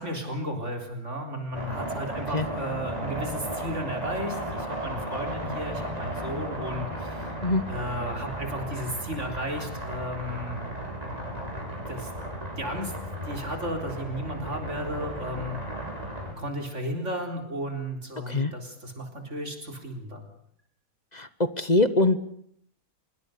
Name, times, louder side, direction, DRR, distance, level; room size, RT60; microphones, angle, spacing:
voice 1, 0.0-7.2 7.7-10.7 11.9-12.1 12.6-12.9 13.3-15.6 16.4-20.2, equal, 50° right, 4 dB, 4.3 m, -34 dB
sound 1, 1.5-16.3, right 1 dB, 25° right, 7.7 m, -35 dB
voice 2, 21.6-22.2, left 2 dB, 30° left, 14 dB, 1.1 m, -22 dB
25.5 x 23.0 x 6.8 m, 0.68 s
omnidirectional pair, 1.6 m